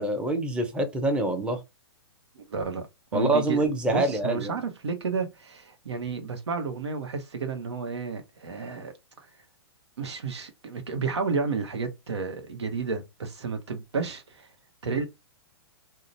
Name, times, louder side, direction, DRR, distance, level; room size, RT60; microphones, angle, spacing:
voice 1, 0.0-1.6 3.1-4.6, right 2 dB, 5° right, 0.5 m, -26 dB
voice 2, 2.4-2.8 3.1-3.6 3.9-8.9 10.0-14.5 14.8-15.1, right 5 dB, 85° right, 0.9 m, -31 dB
2.8 x 2.1 x 2.5 m
hypercardioid pair, 130°, 14 cm